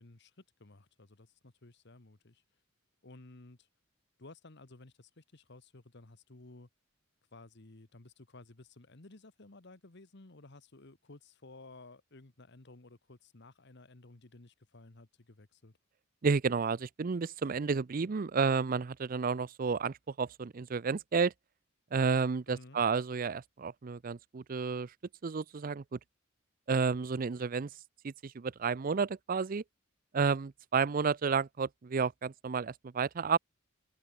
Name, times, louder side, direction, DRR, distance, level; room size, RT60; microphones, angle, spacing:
voice 1, 0.0-2.4 3.0-3.7 4.2-6.7 7.3-15.8 22.5-22.8, left 2 dB, 55° left, 1.4 m, -55 dB
voice 2, 16.2-21.3 21.9-24.9 25.2-26.0 26.7-27.7 28.0-29.6 30.1-33.4, right 5 dB, 45° right, 0.5 m, -31 dB
head